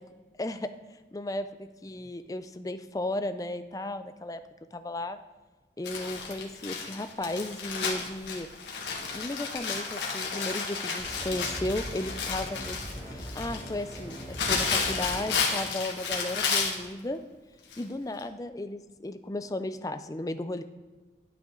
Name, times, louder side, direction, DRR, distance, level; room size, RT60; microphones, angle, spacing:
voice 1, 0.4-0.7 1.1-4.4 4.7-5.2 5.8-8.5 9.1-17.2 17.8-20.6, left 1 dB, 20° left, 10 dB, 0.4 m, -35 dB
Crumpling crinkling, 5.8-16.8 17.7-17.8 18.2-18.3, left 5 dB, 90° left, 1.5 m, -32 dB
sound 1, 11.0-15.4, equal, 35° right, 2.6 m, -40 dB
10.5 x 5.9 x 3.8 m, 1.3 s
head